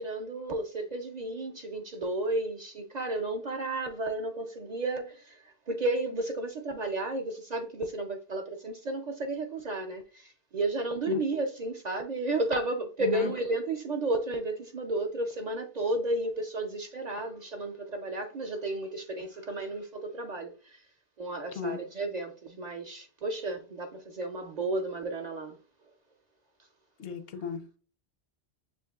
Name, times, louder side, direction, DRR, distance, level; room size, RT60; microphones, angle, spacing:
voice 1, 0.0-20.8 21.2-25.6, right 2 dB, 55° right, 0.5 m, -33 dB
voice 2, 13.0-13.3 21.5-21.8 27.0-27.8, left 5 dB, 80° left, 1.0 m, -35 dB
6.9 x 3.0 x 2.3 m
omnidirectional pair, 1.1 m